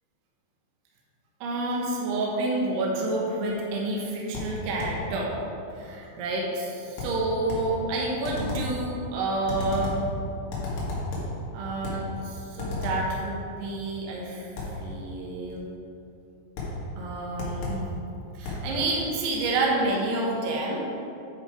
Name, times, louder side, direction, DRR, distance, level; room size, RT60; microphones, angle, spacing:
voice 1, 1.4-5.3 5.7-9.9 11.5-14.5 14.8-15.7 17.0-17.8 18.3-20.9, right 2 dB, 80° right, -3 dB, 3.2 m, -29 dB
sound 1, 4.3-5.1 7.0-7.8 8.2-8.8 9.5-10.1 10.5-11.4 11.8-12.1 12.6-13.1 14.6-14.8 16.6-16.8 17.4-17.9 18.4-18.7, left 2 dB, 80° left, 3.8 m, -32 dB
10.5 x 4.9 x 4.9 m, 2.9 s
omnidirectional pair, 4.8 m